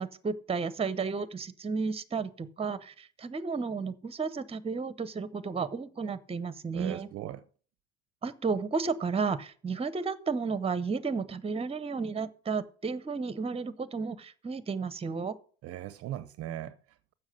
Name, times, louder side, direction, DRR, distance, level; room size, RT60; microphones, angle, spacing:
voice 1, 0.0-7.1 8.2-15.3, right 5 dB, 20° right, 0.8 m, -33 dB
voice 2, 6.7-7.4 15.6-17.1, right 12 dB, 50° right, 0.6 m, -39 dB
7.3 x 6.1 x 7.6 m
hypercardioid pair, 80°, 31 cm